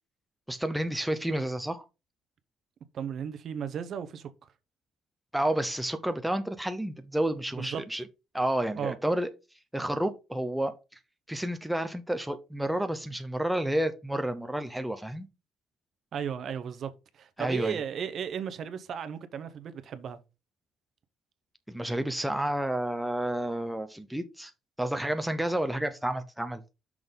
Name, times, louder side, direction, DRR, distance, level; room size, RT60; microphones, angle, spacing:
voice 1, 0.5-1.9 5.3-8.0 8.3-9.3 9.7-10.7 11.3-15.3 17.4-17.8 21.7-24.5 24.8-26.6, right 1 dB, 5° right, 0.5 m, -30 dB
voice 2, 2.9-4.3 7.5-7.8 8.8-9.0 16.1-20.2, right 7 dB, 50° right, 0.8 m, -35 dB
6.1 x 3.8 x 5.2 m
cardioid pair, 140°, 0 cm